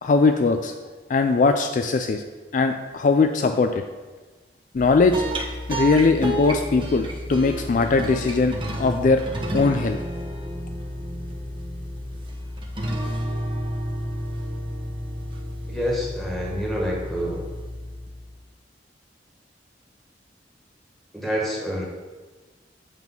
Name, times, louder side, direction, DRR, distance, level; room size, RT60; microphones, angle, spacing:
voice 1, 0.0-0.7 1.1-2.2 2.5-3.8 4.7-5.2 5.7-9.2 9.5-10.0, left 4 dB, 45° left, 6 dB, 0.3 m, -20 dB
sound 1, 4.8-18.3, equal, 30° right, 0.9 m, -31 dB
voice 2, 15.7-17.4 21.1-21.8, equal, ahead, -4 dB, 1.7 m, -27 dB
8.2 x 3.6 x 5.9 m, 1.3 s
head